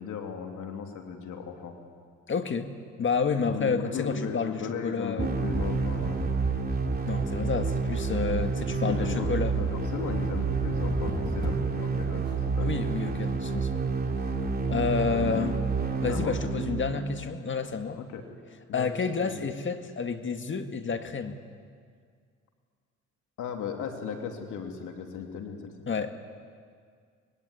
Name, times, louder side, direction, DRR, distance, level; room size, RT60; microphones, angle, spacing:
voice 1, 0.0-1.7 3.4-6.2 8.7-12.7 15.1-15.5 16.1-16.4 18.0-18.2 18.7-18.9 19.2-19.4 23.4-25.7, left 6 dB, 80° left, 3 dB, 3.1 m, -36 dB
voice 2, 2.3-2.7 3.0-5.3 7.1-9.5 12.6-13.9 14.7-15.6 16.0-18.0 18.7-21.4 25.9-26.2, left 5 dB, 40° left, 7 dB, 1.9 m, -30 dB
sound 1, 5.2-17.2, right 5 dB, 30° right, 3.3 m, -29 dB
sound 2, 5.5-11.9, left 1 dB, 15° left, 3.5 m, -38 dB
25.5 x 21.5 x 9.9 m, 2.1 s
cardioid pair, 90°, 30 cm